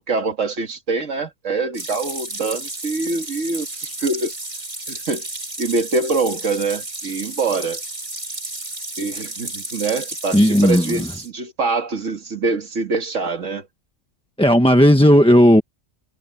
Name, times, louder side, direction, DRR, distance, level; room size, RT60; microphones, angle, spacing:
voice 1, 0.1-4.3 4.9-5.3 5.6-7.8 9.0-13.7, right 3 dB, 75° right, 2.1 m, -24 dB
sound 1, 1.7-11.3, right 2 dB, 35° right, 3.2 m, -32 dB
voice 2, 10.3-11.1 14.4-15.6, equal, 5° left, 1.1 m, -13 dB
omnidirectional pair, 1.3 m